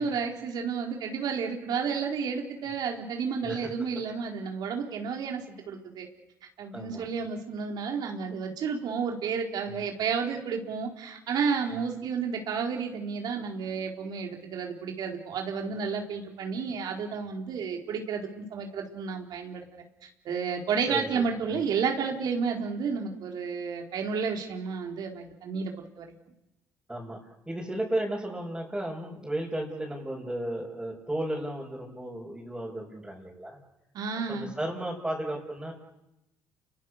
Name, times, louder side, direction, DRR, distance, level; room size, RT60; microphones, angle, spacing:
voice 1, 0.0-6.1 6.6-19.6 20.2-26.1 33.9-34.5, right 6 dB, 65° right, 2 dB, 4.2 m, -31 dB
voice 2, 6.7-7.1 9.6-9.8 11.7-11.8 20.9-21.6 26.9-33.6 34.3-35.7, right 1 dB, 10° right, -5 dB, 6.4 m, -34 dB
29.5 x 23.5 x 6.6 m, 0.93 s
supercardioid pair, 85°, 8 cm